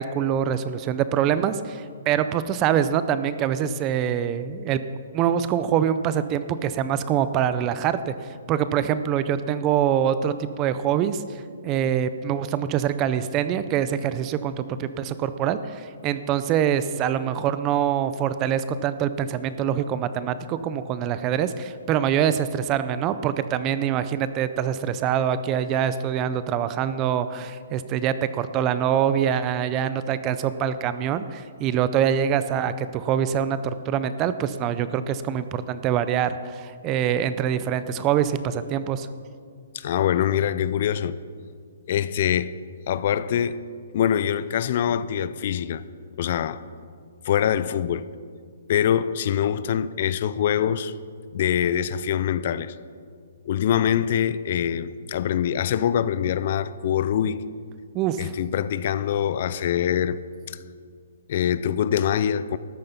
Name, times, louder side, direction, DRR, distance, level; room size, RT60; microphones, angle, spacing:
voice 1, 0.0-4.8 5.1-8.1 8.5-39.1 57.9-58.4, right 9 dB, 25° right, 0.5 m, -24 dB
voice 2, 39.7-41.2 41.9-42.5 42.9-43.6 43.9-45.8 46.1-46.6 47.2-48.1 48.7-50.9 51.3-52.8 53.5-57.4 58.2-60.2 60.5-60.6 61.3-62.6, left 9 dB, 45° left, 0.5 m, -24 dB
13.5 x 9.1 x 5.8 m
hypercardioid pair, 160°, 0 cm